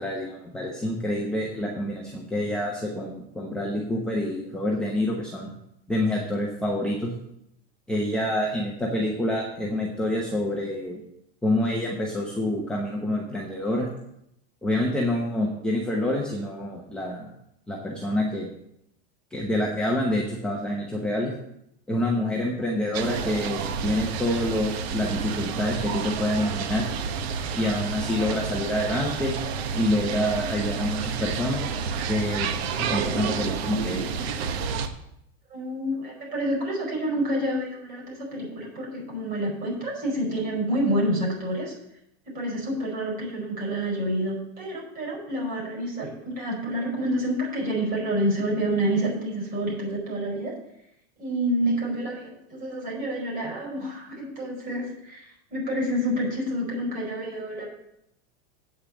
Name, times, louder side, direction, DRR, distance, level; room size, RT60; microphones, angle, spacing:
voice 1, 0.0-5.5 5.9-7.1 7.9-11.0 11.4-13.9 14.6-17.3 17.7-18.5 19.3-21.3 21.9-26.8 27.5-29.3 29.7-31.6 32.1-32.5 32.9-34.1, left 1 dB, 5° left, -3 dB, 0.9 m, -27 dB
sound 1, 22.9-34.9, right 6 dB, 75° right, 1.2 m, -30 dB
voice 2, 35.5-41.7 42.2-50.6 51.2-57.7, right 1 dB, 30° right, -2 dB, 4.8 m, -28 dB
8.6 x 5.6 x 8.0 m, 0.79 s
supercardioid pair, 160°, 32 cm